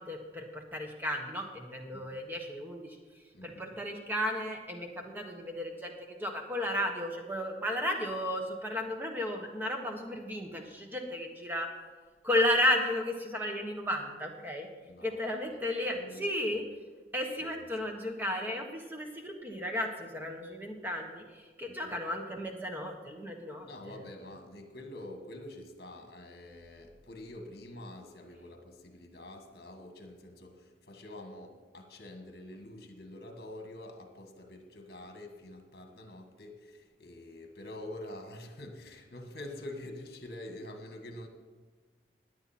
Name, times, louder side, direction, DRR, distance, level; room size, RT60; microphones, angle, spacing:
voice 1, 0.0-3.0 3.4-11.7 12.2-14.7 15.0-16.6 17.1-24.0, left 1 dB, 10° right, 2 dB, 1.4 m, -34 dB
voice 2, 3.3-3.8 14.9-16.6 17.4-17.7 21.7-22.0 23.6-41.3, left 1 dB, 60° left, 5 dB, 1.6 m, -47 dB
17.0 x 9.8 x 4.3 m, 1.4 s
head